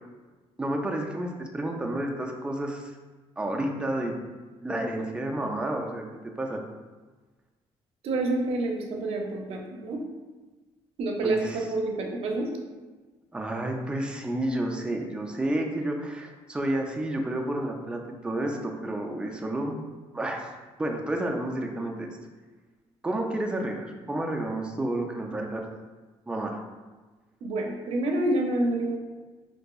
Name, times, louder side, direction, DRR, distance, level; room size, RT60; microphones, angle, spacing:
voice 1, 0.6-2.9 3.4-4.1 4.6-6.0 6.4-6.6 11.2-11.6 13.3-19.8 20.1-20.5 20.8-22.1 23.0-25.6 26.3-26.6, right 1 dB, 10° right, 1 dB, 0.3 m, -30 dB
voice 2, 8.0-10.0 11.0-12.5 27.4-29.0, right 2 dB, 60° right, 1 dB, 0.5 m, -28 dB
3.9 x 2.6 x 2.3 m, 1.3 s
cardioid pair, 145°, 11 cm